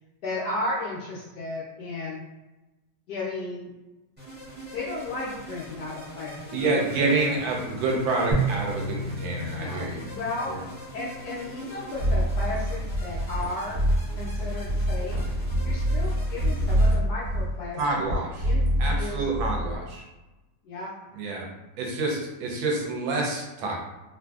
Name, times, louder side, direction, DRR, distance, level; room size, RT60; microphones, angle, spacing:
voice 1, 0.2-2.2 3.1-3.7 4.7-6.5 7.0-7.4 9.5-10.5 10.9-13.8 14.2-15.2 15.6-17.8 18.4-19.2 19.7-19.8 20.6-20.9, left 2 dB, 75° left, -6 dB, 0.9 m, -34 dB
sound 1, 4.2-17.0, equal, 10° right, 0.6 m, -42 dB
voice 2, 6.5-10.1 10.5-10.6 17.8-18.5 18.8-20.0 21.1-21.5 21.8-23.8, right 3 dB, 75° right, -1 dB, 1.3 m, -28 dB
sound 2, 8.3-11.6, right 3 dB, 55° right, 1.0 m, -32 dB
sound 3, 12.0-19.8, equal, 40° right, 1.3 m, -25 dB
3.2 x 2.5 x 2.3 m, 1.1 s
omnidirectional pair, 2.2 m